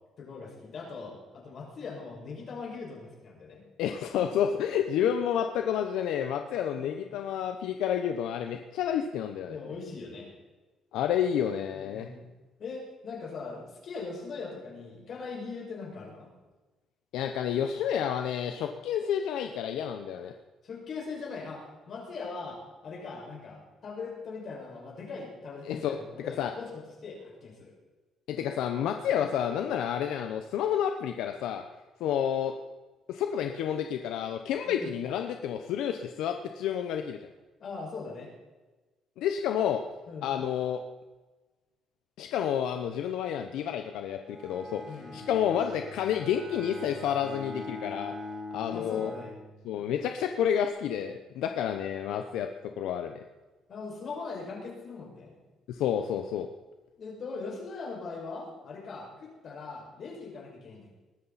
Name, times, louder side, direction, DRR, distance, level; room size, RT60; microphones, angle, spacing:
voice 1, 0.2-3.6 6.7-7.2 9.5-10.3 11.7-12.3 12.6-16.3 20.6-27.7 34.6-35.0 37.6-38.3 40.1-40.4 44.9-45.2 48.7-49.3 49.7-49.9 53.7-55.4 57.0-61.0, left 4 dB, 50° left, -2 dB, 5.8 m, -41 dB
voice 2, 3.8-9.6 10.9-12.1 17.1-20.3 25.6-26.0 26.4-26.5 28.3-31.6 32.0-32.5 33.1-37.2 39.2-39.8 40.2-40.8 42.2-44.8 45.1-48.2 48.5-49.1 49.6-53.2 55.7-56.5, left 9 dB, 85° left, 6 dB, 0.9 m, -30 dB
Bowed string instrument, 44.2-50.0, left 1 dB, 30° right, 4.3 m, -43 dB
21.0 x 13.0 x 4.2 m, 1.2 s
cardioid pair, 135°, 0 cm